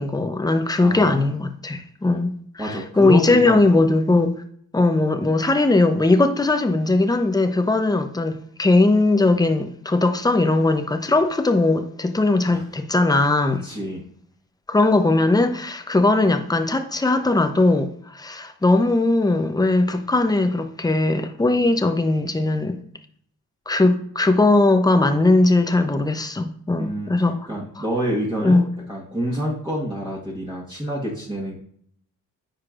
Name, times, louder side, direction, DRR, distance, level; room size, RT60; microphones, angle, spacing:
voice 1, 0.0-4.3 4.7-13.6 14.7-22.8 23.7-27.4 28.4-28.6, left 2 dB, 10° left, 0.7 m, -19 dB
voice 2, 0.8-1.3 2.6-3.8 13.6-14.0 26.8-27.1 27.5-28.6 28.9-31.6, equal, 15° right, 1.5 m, -27 dB
9.6 x 4.4 x 2.5 m
cardioid pair, 70°, 36 cm